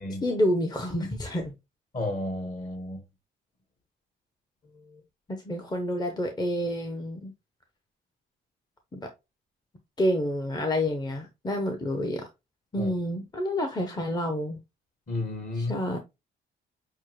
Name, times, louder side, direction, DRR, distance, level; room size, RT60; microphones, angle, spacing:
voice 1, 0.2-1.5 5.4-7.3 8.9-9.1 10.0-12.3 12.7-14.6 15.5-16.0, left 1 dB, 20° left, 0.7 m, -28 dB
voice 2, 1.9-3.0 12.8-12.9 15.1-15.8, left 2 dB, 45° left, 1.7 m, -32 dB
6.3 x 2.1 x 3.1 m
cardioid pair, 90°, 20 cm